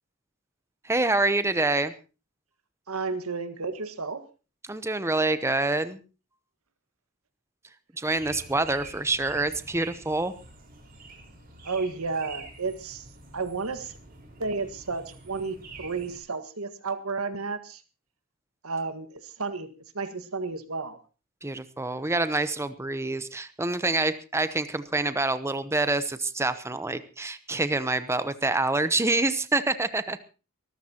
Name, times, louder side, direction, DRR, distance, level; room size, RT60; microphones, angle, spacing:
voice 1, 0.8-1.9 4.7-6.0 8.0-10.3 21.4-30.2, right 2 dB, 15° right, 12 dB, 0.8 m, -26 dB
voice 2, 2.9-4.2 11.6-13.0 13.3-14.0 14.4-17.8 18.6-19.7 19.9-21.0, right 4 dB, 90° right, 10 dB, 1.7 m, -32 dB
sound 1, 8.2-16.2, right 3 dB, 45° right, 4.5 m, -47 dB
24.0 x 14.0 x 2.9 m, 0.32 s
head